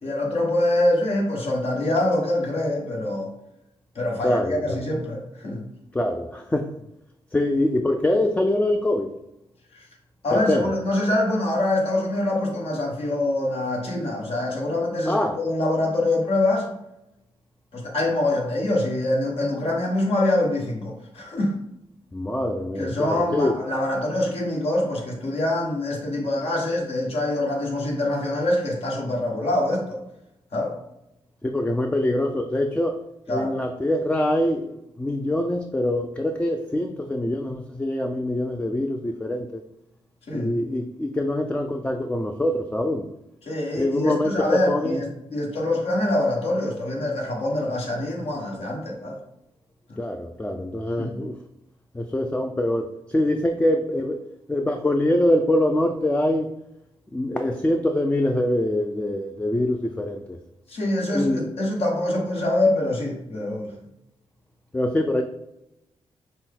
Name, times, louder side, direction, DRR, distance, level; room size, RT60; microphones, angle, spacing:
voice 1, 0.0-3.3 3.9-5.6 10.2-16.7 17.7-21.5 22.8-30.0 30.5-30.7 33.3-33.5 40.3-40.5 43.4-49.2 51.0-51.2 60.7-63.7, left 1 dB, 65° left, -1 dB, 1.4 m, -24 dB
voice 2, 4.2-4.8 5.9-6.7 7.3-9.1 10.3-10.7 15.1-15.4 22.1-23.6 31.4-33.0 33.3-39.6 40.3-43.0 43.8-45.0 50.0-51.4 51.9-56.5 57.1-60.4 61.1-61.5 64.7-65.2, left 1 dB, 10° left, 5 dB, 0.3 m, -24 dB
5.9 x 2.2 x 3.7 m, 0.86 s
cardioid pair, 75°, 11 cm